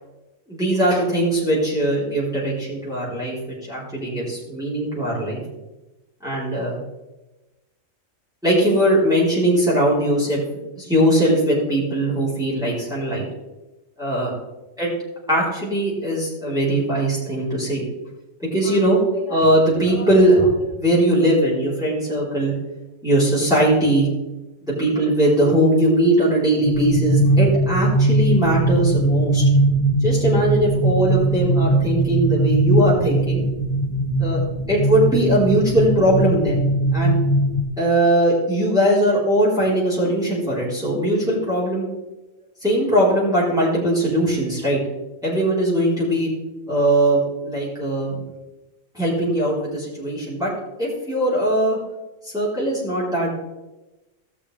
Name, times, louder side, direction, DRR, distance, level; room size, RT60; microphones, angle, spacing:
voice 1, 0.5-3.3 3.7-5.4 6.2-6.8 8.4-10.4 10.8-13.2 14.0-14.3 14.8-14.9 15.3-17.8 18.4-22.5 23.0-24.1 24.6-29.5 30.0-33.4 34.2-34.4 34.7-36.7 36.9-37.2 37.8-41.9 42.6-44.8 45.2-46.3 46.7-48.2 48.9-50.5 50.8-51.8 52.2-53.3, right 1 dB, 5° right, -8 dB, 3.9 m, -20 dB
sound 1, 26.6-37.6, right 2 dB, 35° left, 1.3 m, -20 dB
17.5 x 7.4 x 3.4 m, 1.1 s
omnidirectional pair, 1.3 m